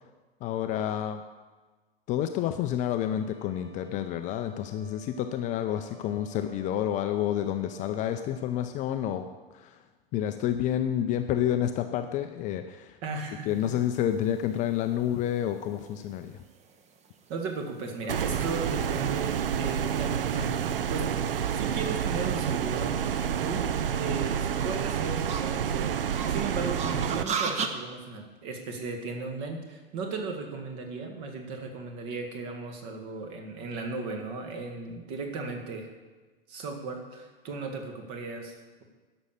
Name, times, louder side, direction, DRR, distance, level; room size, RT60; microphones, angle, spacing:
voice 1, 0.4-1.2 2.1-9.3 9.5-9.8 10.1-13.0 13.5-16.4, left 11 dB, 25° left, 8 dB, 0.5 m, -29 dB
sound 1, 2.8-8.8, right 3 dB, 90° right, 3.5 m, -54 dB
voice 2, 13.0-13.5 17.3-23.0 23.4-23.7 24.0-35.9 36.5-38.8, right 4 dB, 40° right, 4 dB, 1.9 m, -36 dB
sound 2, 13.8-27.7, right 5 dB, 25° right, 0.9 m, -39 dB
sound 3, 18.1-27.2, right 8 dB, 65° right, 0.6 m, -29 dB
11.0 x 6.2 x 6.9 m, 1.3 s
figure-of-eight pair, 90°, 30 cm